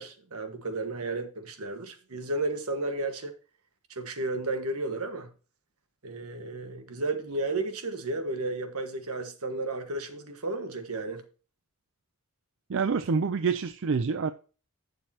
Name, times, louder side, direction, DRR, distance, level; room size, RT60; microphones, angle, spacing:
voice 1, 0.0-3.3 3.9-5.3 6.0-11.2, right 2 dB, 80° right, 1.5 m, -33 dB
voice 2, 12.7-14.3, right 5 dB, 60° right, 0.5 m, -27 dB
11.5 x 6.8 x 2.8 m
head